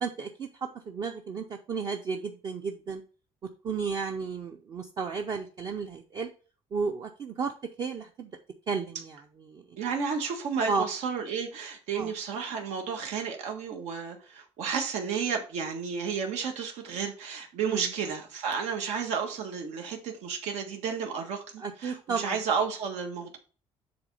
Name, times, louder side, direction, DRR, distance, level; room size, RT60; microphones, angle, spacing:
voice 1, 0.0-3.0 3.6-6.3 6.7-7.5 7.8-8.3 8.7-9.6 10.7-10.8 11.9-12.1 17.6-17.9 21.6-22.4, right 5 dB, 35° right, 4 dB, 0.6 m, -33 dB
voice 2, 9.8-23.4, right 6 dB, 85° right, 3 dB, 1.5 m, -32 dB
7.9 x 3.5 x 5.4 m, 0.37 s
cardioid pair, 175°, 11 cm